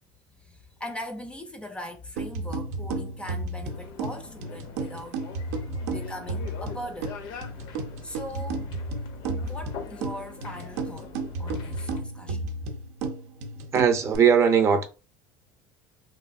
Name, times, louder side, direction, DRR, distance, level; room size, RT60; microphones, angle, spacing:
voice 1, 0.4-5.2 5.9-7.2 7.5-7.7 8.0-8.9 9.4-11.1 11.4-12.4, equal, 10° left, 0.4 m, -40 dB
sound 1, 2.2-14.2, right 2 dB, 85° right, 0.5 m, -33 dB
sound 2, 3.6-12.0, left 7 dB, 60° left, 0.6 m, -44 dB
voice 2, 13.7-14.8, right 7 dB, 35° right, 0.6 m, -19 dB
3.0 x 2.5 x 2.4 m
supercardioid pair, 120°, 8 cm